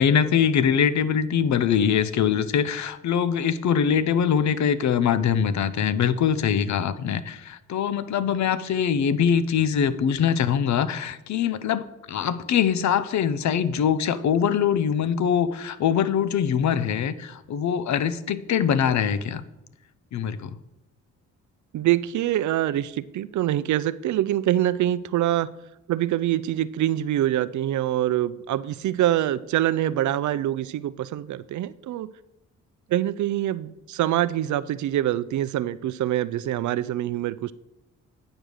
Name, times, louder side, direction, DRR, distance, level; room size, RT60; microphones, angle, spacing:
voice 1, 0.0-19.4 20.1-20.6, left 8 dB, 65° left, 14 dB, 0.6 m, -23 dB
voice 2, 21.7-25.5 25.9-32.1 32.9-37.5, right 13 dB, 65° right, 17 dB, 0.5 m, -25 dB
8.9 x 5.2 x 6.4 m, 0.93 s
cardioid pair, 105°, 31 cm